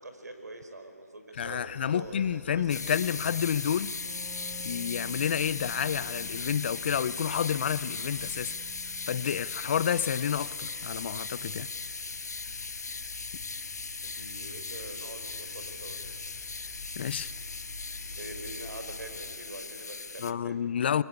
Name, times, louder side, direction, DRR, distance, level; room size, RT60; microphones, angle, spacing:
voice 1, 0.0-3.0 14.0-16.0 18.1-20.6, right 2 dB, 80° right, 5.3 m, -44 dB
sound 1, 1.3-19.4, left 3 dB, 55° left, 3.4 m, -49 dB
voice 2, 1.4-3.9 4.6-8.5 9.1-11.7 17.0-17.3 20.2-21.0, left 8 dB, 40° left, 0.6 m, -29 dB
sound 2, 2.7-20.3, left 4 dB, 80° left, 0.9 m, -38 dB
Wind instrument woodwind instrument, 3.8-9.5, right 2 dB, 25° right, 2.3 m, -51 dB
25.5 x 23.5 x 9.8 m
figure-of-eight pair, 155°, 9 cm